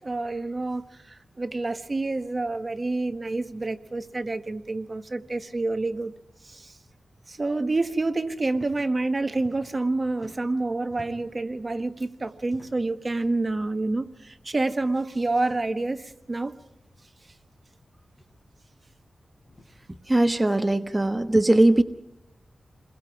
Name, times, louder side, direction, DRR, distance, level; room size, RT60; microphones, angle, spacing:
voice 1, 0.0-6.1 6.4-6.8 7.3-16.5, right 2 dB, 35° right, 1.4 m, -28 dB
sound 1, 8.5-8.7 9.0-9.9 10.1-11.4 12.4-13.0 13.9-14.1 14.4-14.5 15.4-15.7 16.8-16.9 18.1-18.4 19.4-19.7, left 1 dB, 30° left, 7.3 m, -51 dB
voice 2, 20.1-21.8, right 1 dB, 20° right, 1.2 m, -20 dB
29.0 x 22.0 x 4.9 m
wide cardioid pair, 75°, 0 cm